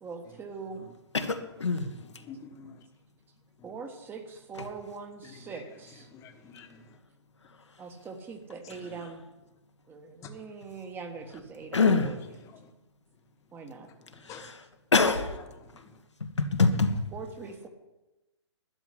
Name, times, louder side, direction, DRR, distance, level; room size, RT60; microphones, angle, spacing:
voice 1, 0.0-0.8 3.6-6.1 7.8-9.2 9.9-12.2 13.5-13.9 17.1-17.7, right 5 dB, 15° right, 6 dB, 1.3 m, -42 dB
voice 2, 1.1-1.9 11.7-12.1 14.3-14.5 14.9-15.4 16.2-17.0, left 4 dB, 80° left, 6 dB, 1.6 m, -24 dB
voice 3, 1.9-2.8 3.6-3.7 5.2-5.6 6.1-7.0 8.8-9.1 10.2-10.3 12.4-12.7 14.0-14.5 15.0-15.1 15.6-16.0, left 6 dB, 20° left, 6 dB, 1.4 m, -49 dB
12.0 x 7.1 x 9.8 m, 1.0 s
figure-of-eight pair, 125°, 15 cm